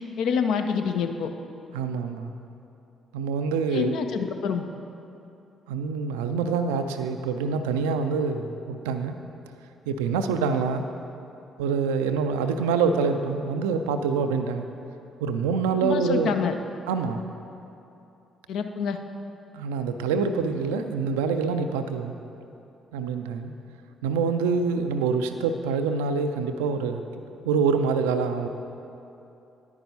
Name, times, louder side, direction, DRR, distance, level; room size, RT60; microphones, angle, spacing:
voice 1, 0.2-1.3 3.7-4.7 15.8-16.6 18.5-19.0, left 6 dB, 60° left, 7 dB, 0.5 m, -26 dB
voice 2, 1.7-2.3 3.1-4.0 5.7-9.2 9.9-10.9 11.6-14.7 15.2-16.3 16.9-17.2 19.5-22.1 22.9-23.5 24.0-28.5, right 5 dB, 70° right, 7 dB, 0.3 m, -26 dB
10.5 x 9.4 x 2.7 m, 2.8 s
figure-of-eight pair, 40°, 0 cm